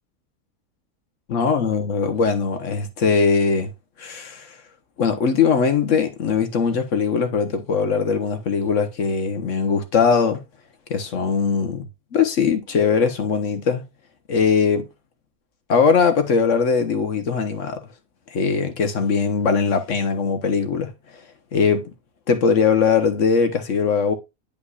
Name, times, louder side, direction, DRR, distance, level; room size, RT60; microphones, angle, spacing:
voice 1, 1.3-3.7 4.0-4.5 5.0-10.4 10.9-11.9 12.1-13.8 14.3-14.9 15.7-17.8 18.3-20.9 21.5-21.9 22.3-24.1, left 5 dB, 60° left, 1.3 m, -20 dB
9.7 x 5.2 x 2.4 m
omnidirectional pair, 1.5 m